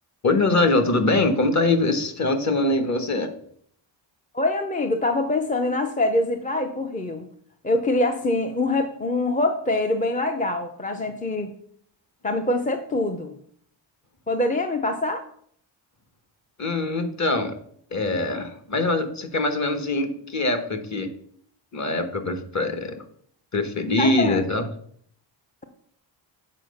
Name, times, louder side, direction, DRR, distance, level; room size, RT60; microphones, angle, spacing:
voice 1, 0.2-3.3 16.6-17.6 17.9-21.1 21.7-23.0 23.5-24.6, left 2 dB, 35° left, 8 dB, 1.1 m, -23 dB
voice 2, 4.3-7.3 7.6-11.5 12.2-13.3 14.3-15.2 24.0-24.6, left 2 dB, 15° left, 6 dB, 0.5 m, -24 dB
7.6 x 4.7 x 6.3 m, 0.63 s
wide cardioid pair, 155°, 47 cm